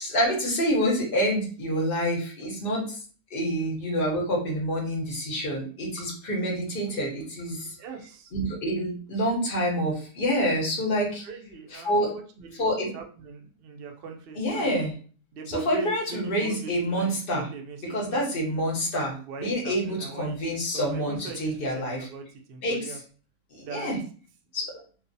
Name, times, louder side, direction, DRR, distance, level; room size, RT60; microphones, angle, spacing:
voice 1, 0.0-3.0 3.3-7.8 8.3-11.2 11.7-12.1 12.6-12.9 14.4-14.9 15.5-17.5 17.9-22.1 22.6-22.9 23.5-24.0 24.5-24.7, equal, 45° left, -2 dB, 0.9 m, -27 dB
voice 2, 7.6-8.3 11.2-14.9 15.3-18.7 19.3-23.0 23.6-23.9, right 5 dB, 75° right, 3 dB, 0.5 m, -40 dB
2.9 x 2.0 x 2.6 m, 0.40 s
omnidirectional pair, 1.7 m